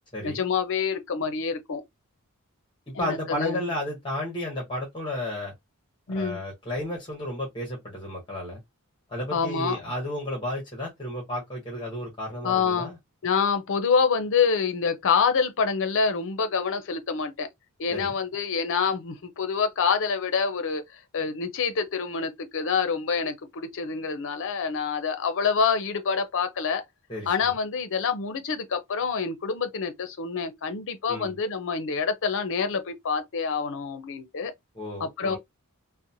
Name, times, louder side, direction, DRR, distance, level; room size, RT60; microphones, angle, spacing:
voice 1, 0.2-1.8 2.9-3.7 6.1-6.4 9.3-9.8 12.4-12.9 13.2-17.5 17.8-26.8 27.3-34.5 35.0-35.4, left 5 dB, 60° left, 0.6 m, -26 dB
voice 2, 2.9-5.5 6.1-8.6 9.1-13.0 17.9-18.1 27.1-27.5 31.1-31.3 34.7-35.4, left 1 dB, 20° left, 0.9 m, -33 dB
2.8 x 2.1 x 2.6 m
head